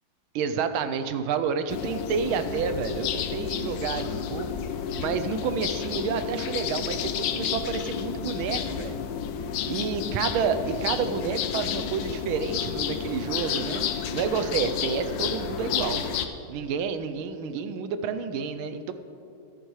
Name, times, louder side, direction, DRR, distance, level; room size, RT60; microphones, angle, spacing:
voice 1, 0.3-4.5 5.0-9.0 9.7-16.0 16.5-18.9, right 6 dB, 80° right, 10 dB, 1.4 m, -29 dB
sound 1, 1.7-16.3, left 7 dB, 85° left, 0.8 m, -31 dB
13.0 x 10.0 x 3.1 m, 2.7 s
omnidirectional pair, 2.3 m